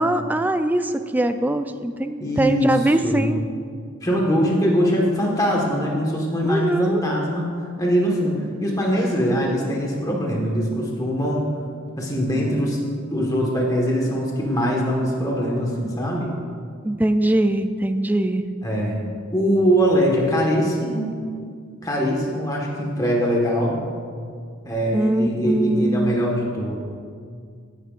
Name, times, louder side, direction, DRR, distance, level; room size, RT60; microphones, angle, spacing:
voice 1, 0.0-3.4 6.4-7.0 16.8-18.5 24.9-26.2, right 1 dB, 10° right, 8 dB, 0.4 m, -22 dB
voice 2, 2.2-2.7 3.0-3.2 4.0-7.5 7.8-8.3 8.6-11.4 12.0-12.8 13.1-16.3 18.6-19.0 19.3-21.2 21.8-23.8 24.6-26.8, equal, 20° left, -2 dB, 1.5 m, -22 dB
16.5 x 9.1 x 2.5 m, 2.1 s
head